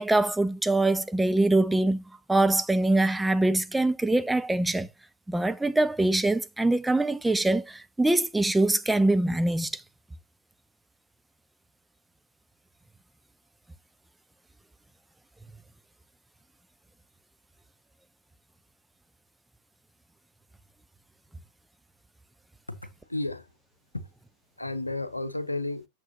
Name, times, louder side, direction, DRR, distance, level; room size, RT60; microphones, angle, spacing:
voice 1, 0.0-2.0 2.3-4.9 5.3-9.7, right 2 dB, 5° right, 0.6 m, -23 dB
voice 2, 22.7-23.5 23.9-24.1 24.6-25.9, left 2 dB, 85° left, 0.8 m, -33 dB
8.0 x 7.3 x 2.8 m
figure-of-eight pair, 90°, 0 cm